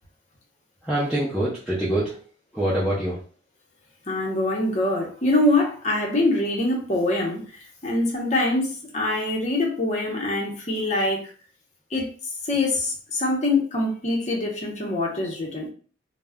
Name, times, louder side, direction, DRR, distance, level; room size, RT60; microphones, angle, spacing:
voice 1, 0.8-2.2 2.5-3.2, right 1 dB, ahead, -10 dB, 0.5 m, -25 dB
voice 2, 4.1-11.3 11.9-15.7, left 2 dB, 35° left, -1 dB, 0.7 m, -24 dB
2.3 x 2.1 x 3.4 m, 0.41 s
head